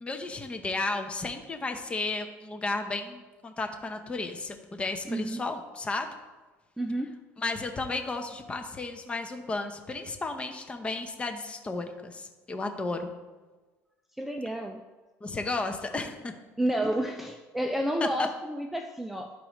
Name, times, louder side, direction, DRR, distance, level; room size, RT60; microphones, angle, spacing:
voice 1, 0.0-6.1 7.4-13.1 15.2-16.4 18.0-18.3, left 3 dB, 20° left, 6 dB, 0.8 m, -33 dB
voice 2, 5.1-5.4 6.8-7.2 14.2-14.8 16.6-19.3, right 1 dB, 5° right, 4 dB, 0.4 m, -30 dB
12.5 x 4.6 x 3.1 m, 1.3 s
cardioid pair, 120°, 6 cm